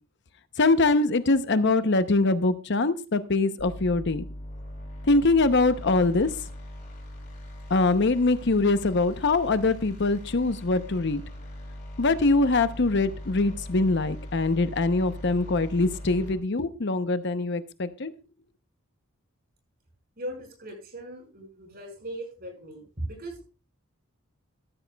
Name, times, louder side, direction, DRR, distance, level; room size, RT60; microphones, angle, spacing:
voice 1, 0.6-4.3 5.1-6.3 7.7-11.2 12.0-18.1, left 3 dB, 55° left, 11 dB, 0.8 m, -23 dB
sound 1, 3.6-16.3, left 1 dB, 40° left, 6.2 m, -40 dB
voice 2, 20.2-23.4, right 1 dB, 45° right, 3 dB, 5.3 m, -38 dB
13.5 x 13.5 x 2.3 m, 0.32 s
head